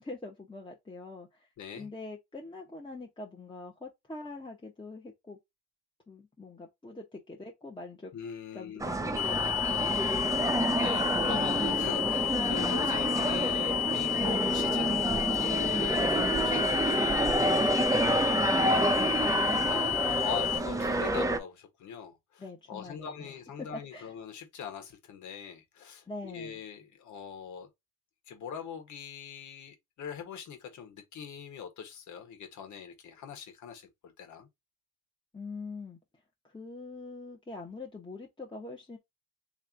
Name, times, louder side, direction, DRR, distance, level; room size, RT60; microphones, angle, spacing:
voice 1, 0.0-1.5 1.8-5.4 6.1-8.1 8.5-10.2 18.5-19.7 22.4-24.1 26.1-26.6 35.3-36.0 36.4-39.0, left 3 dB, 15° left, 1.0 m, -44 dB
voice 2, 1.6-1.9 8.1-8.9 10.7-15.1 15.4-17.8 19.6-22.4 22.7-27.7 28.3-34.5, left 7 dB, 75° left, 1.6 m, -42 dB
sound 1, 8.8-21.4, right 2 dB, 10° right, 0.7 m, -28 dB
sound 2, 9.2-20.6, left 14 dB, 55° left, 1.2 m, -31 dB
3.2 x 3.1 x 3.7 m
cardioid pair, 90°, 30 cm